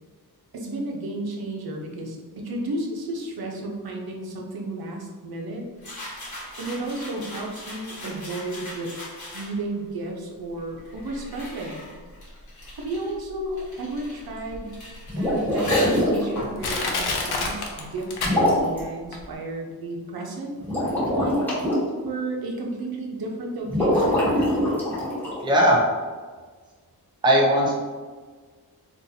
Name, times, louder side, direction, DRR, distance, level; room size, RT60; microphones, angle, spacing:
voice 1, 0.5-5.7 6.6-8.9 9.3-11.9 12.7-14.7 15.2-20.5 21.1-21.5 22.0-24.3, right 2 dB, 70° right, 0 dB, 0.7 m, -32 dB
sound 1, 5.8-9.8 10.6-18.0, left 1 dB, 50° left, 1.2 m, -38 dB
Crushing, 14.5-14.6 15.3-15.4 16.0-16.1 16.6-18.8 19.1-19.2, left 3 dB, 85° left, 0.6 m, -27 dB
sound 2, 15.1-16.3 18.2-18.8 20.6-21.7 23.7-25.4, equal, 5° left, 1.2 m, -23 dB
voice 2, 25.4-25.8 27.2-27.8, equal, 10° right, -3 dB, 0.5 m, -18 dB
3.9 x 2.6 x 2.7 m, 1.5 s
wide cardioid pair, 145°, 38 cm